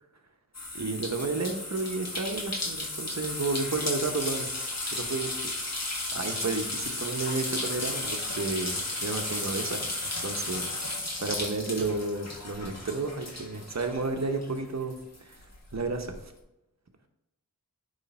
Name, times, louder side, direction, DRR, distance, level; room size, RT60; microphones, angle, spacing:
sound 1, 0.5-14.6 14.9-16.1, left 2 dB, 50° left, 1.6 m, -34 dB
voice 1, 0.7-4.5 4.9-5.5 6.1-15.5 15.7-16.2, right 3 dB, 50° right, 5 dB, 1.0 m, -32 dB
9.7 x 3.2 x 4.4 m, 0.89 s
cardioid pair, 40°, 35 cm